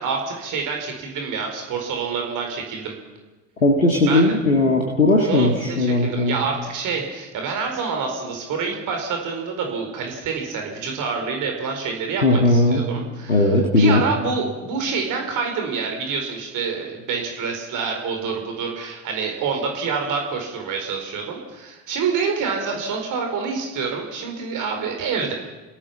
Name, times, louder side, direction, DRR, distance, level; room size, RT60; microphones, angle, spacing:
voice 1, 0.0-2.9 4.1-4.3 5.2-13.5 13.8-25.3, right 5 dB, 50° right, 2 dB, 4.7 m, -27 dB
voice 2, 3.6-6.4 12.2-12.8 13.3-14.0, left 2 dB, 85° left, 0 dB, 1.9 m, -18 dB
30.0 x 17.5 x 5.9 m, 1.2 s
figure-of-eight pair, 55°, 39 cm